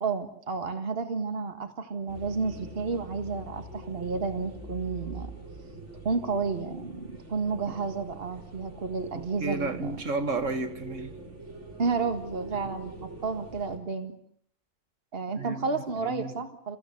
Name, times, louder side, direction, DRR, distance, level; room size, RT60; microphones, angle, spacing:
voice 1, 0.0-5.3 6.0-10.0 11.8-14.2 15.1-16.8, right 4 dB, 50° right, 8 dB, 1.9 m, -31 dB
sound 1, 2.1-13.8, right 1 dB, 70° right, 4.5 m, -44 dB
voice 2, 9.4-11.1 15.4-16.3, right 3 dB, 85° right, 7 dB, 2.5 m, -32 dB
30.0 x 15.5 x 8.1 m, 0.64 s
omnidirectional pair, 1.3 m